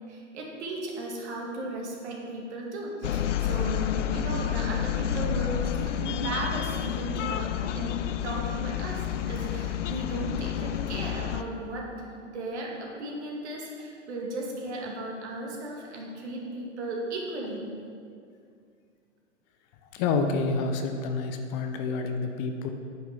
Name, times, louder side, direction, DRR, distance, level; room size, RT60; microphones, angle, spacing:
voice 1, 0.1-17.7, right 1 dB, 65° right, -1 dB, 2.3 m, -35 dB
sound 1, 3.0-11.4, left 10 dB, 75° left, 0.6 m, -30 dB
voice 2, 19.9-22.7, left 4 dB, 35° left, 5 dB, 0.8 m, -28 dB
9.3 x 5.8 x 5.7 m, 2.3 s
hypercardioid pair, 110°, 37 cm